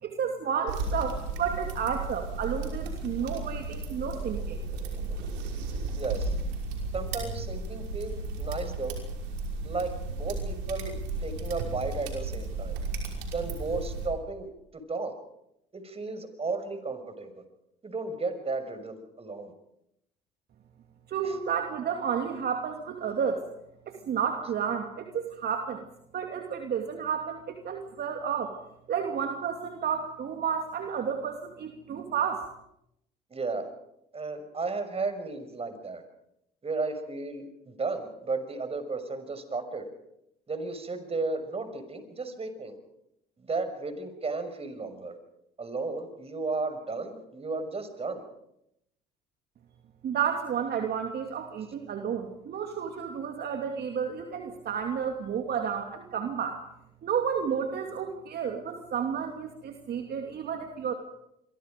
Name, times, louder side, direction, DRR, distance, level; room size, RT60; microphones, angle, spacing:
voice 1, 0.0-4.6 21.1-23.4 23.9-25.9 26.1-28.5 28.9-32.4 50.0-56.6 57.0-60.9, right 7 dB, 50° right, 4 dB, 2.6 m, -31 dB
sound 1, 0.7-14.1, right 3 dB, 80° right, 5.7 m, -34 dB
voice 2, 6.0-6.4 6.9-9.0 9.6-10.9 11.2-12.8 13.3-14.5 14.7-15.1 15.7-17.3 17.8-19.5 21.2-21.3 33.3-33.7 34.1-36.0 36.6-39.9 40.5-42.8 43.4-45.2 45.6-48.2, right 3 dB, 30° right, 9 dB, 6.0 m, -34 dB
27.5 x 24.0 x 5.2 m, 0.79 s
hypercardioid pair, 60°, 21 cm